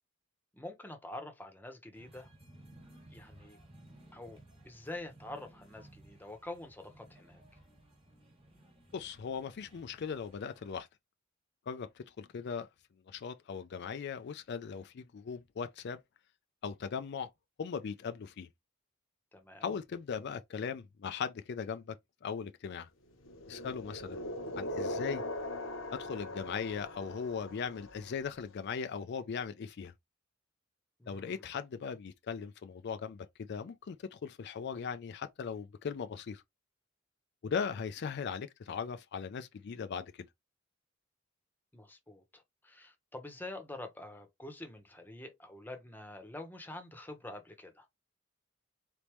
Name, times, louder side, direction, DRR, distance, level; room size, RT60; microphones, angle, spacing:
voice 1, 0.5-2.3 3.1-3.6 4.1-4.4 4.6-7.4 19.3-19.7 31.0-31.5 41.7-47.8, left 1 dB, 10° left, 0.9 m, -46 dB
sound 1, 1.9-10.8, right 1 dB, 30° right, 1.5 m, -58 dB
voice 2, 8.9-10.9 11.7-12.7 13.1-16.0 16.6-17.3 17.6-18.5 19.6-21.9 22.2-22.9 23.5-24.2 24.6-25.2 25.9-29.9 31.1-36.4 37.4-40.3, left 6 dB, 55° left, 0.4 m, -39 dB
sound 2, 23.2-28.2, left 1 dB, 90° left, 1.0 m, -40 dB
4.1 x 3.4 x 3.0 m
head